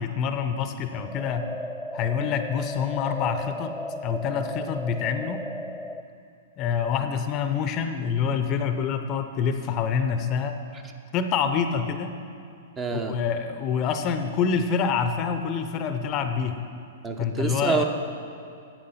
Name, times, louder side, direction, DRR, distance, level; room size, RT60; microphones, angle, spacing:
voice 1, 0.0-1.5 1.9-3.7 4.0-5.4 6.6-10.6 11.1-12.1 12.9-16.6 17.2-17.8, left 6 dB, 35° left, 8 dB, 0.7 m, -26 dB
sound 1, 1.0-6.0, left 1 dB, 5° left, 0.3 m, -36 dB
voice 2, 12.8-13.2 17.0-17.8, right 4 dB, 20° right, 5 dB, 0.9 m, -27 dB
10.5 x 8.0 x 5.7 m, 2.5 s
figure-of-eight pair, 105°, 0 cm